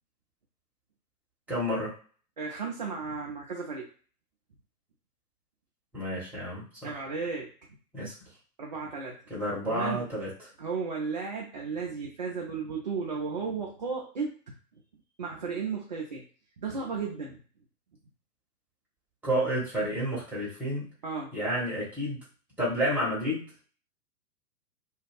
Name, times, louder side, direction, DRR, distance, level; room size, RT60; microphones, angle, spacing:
voice 1, 1.5-1.9 5.9-6.9 7.9-8.1 9.3-10.3 19.2-20.9 21.3-22.2 22.6-23.6, equal, 5° right, -7 dB, 0.9 m, -30 dB
voice 2, 2.4-3.9 6.8-7.5 8.6-9.2 9.7-10.0 10.6-14.5 15.2-16.2 16.6-17.4 21.0-21.4, right 5 dB, 30° right, -2 dB, 0.4 m, -34 dB
2.4 x 2.3 x 3.3 m, 0.41 s
figure-of-eight pair, 110°, 46 cm